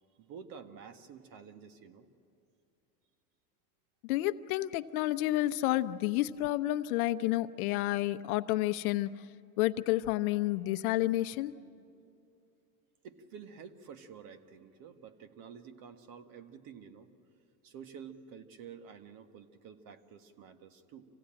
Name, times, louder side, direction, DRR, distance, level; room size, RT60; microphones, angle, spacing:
voice 1, 0.2-2.1 13.0-17.1 17.6-21.1, right 7 dB, 50° right, 9 dB, 1.6 m, -50 dB
voice 2, 4.0-9.1 9.6-11.5, left 16 dB, 70° left, 12 dB, 0.8 m, -30 dB
26.5 x 17.0 x 8.8 m, 2.6 s
supercardioid pair, 125°, 45 cm